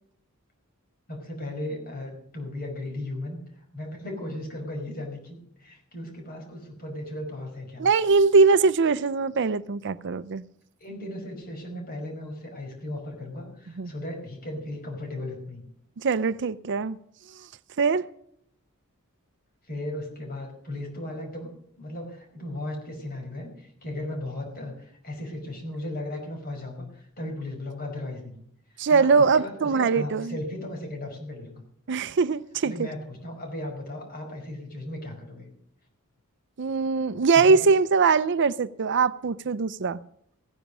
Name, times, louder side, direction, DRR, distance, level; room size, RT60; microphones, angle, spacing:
voice 1, 1.1-3.4 3.7-7.8 10.8-15.6 19.7-28.4 28.7-31.6 32.6-35.5 37.3-37.6, left 1 dB, 45° left, 5.2 m, -36 dB
voice 2, 7.8-10.4 13.8-13.9 16.0-17.0 17.8-18.0 28.8-30.4 31.9-32.9 36.6-40.0, right 4 dB, 55° right, 0.5 m, -22 dB
16.0 x 10.0 x 6.1 m
head